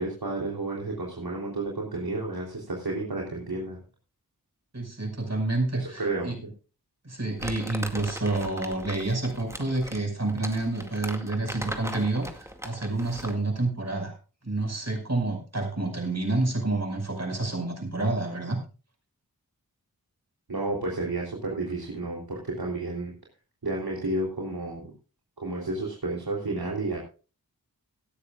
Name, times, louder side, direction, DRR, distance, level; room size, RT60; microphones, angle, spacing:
voice 1, 0.0-3.8 5.8-6.3 20.5-23.1 23.6-24.9 25.4-27.0, right 2 dB, 85° right, -1 dB, 3.3 m, -31 dB
voice 2, 4.7-6.4 7.0-14.1 14.4-18.6, right 2 dB, 45° right, 3 dB, 5.7 m, -29 dB
Crumpling crinkling, 7.4-13.5, equal, 10° right, 2.1 m, -39 dB
17.5 x 13.0 x 2.4 m, 0.34 s
wide cardioid pair, 60°, 36 cm